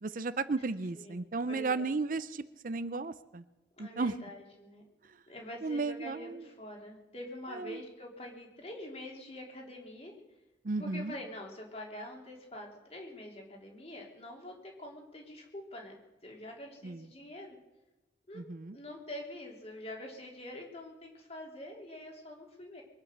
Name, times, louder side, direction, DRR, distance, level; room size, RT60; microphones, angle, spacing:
voice 1, 0.0-3.4 3.8-4.1 5.6-6.4 7.5-7.8 10.6-11.1 16.8-17.0 18.3-18.8, right 3 dB, 50° right, 14 dB, 0.6 m, -34 dB
voice 2, 1.5-1.9 3.8-4.8 5.3-10.2 10.8-15.9 16.2-17.6 18.3-22.8, left 1 dB, 35° left, 0 dB, 3.2 m, -45 dB
23.0 x 8.9 x 6.7 m, 1.1 s
head